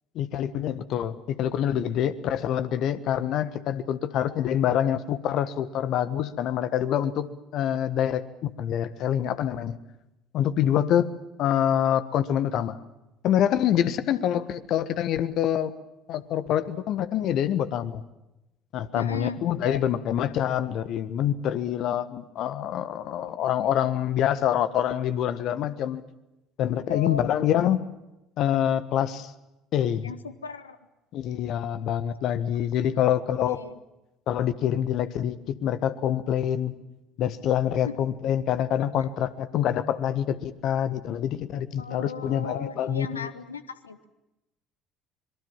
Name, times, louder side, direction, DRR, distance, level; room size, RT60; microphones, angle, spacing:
voice 1, 0.1-9.8 10.3-11.1 11.4-12.8 13.2-15.7 16.1-18.0 18.7-26.0 26.6-27.8 28.4-29.3 29.7-30.1 31.1-33.6 34.3-35.3 35.6-36.7 37.2-43.3, left 10 dB, 55° left, 13 dB, 1.5 m, -26 dB
voice 2, 18.9-19.8 23.1-23.8 26.9-27.3 30.0-30.8 33.0-33.1 33.4-33.8 37.9-38.0 39.0-39.1 41.8-44.1, left 5 dB, 85° left, 12 dB, 1.3 m, -37 dB
25.5 x 22.5 x 7.4 m, 0.94 s
figure-of-eight pair, 60°, 0 cm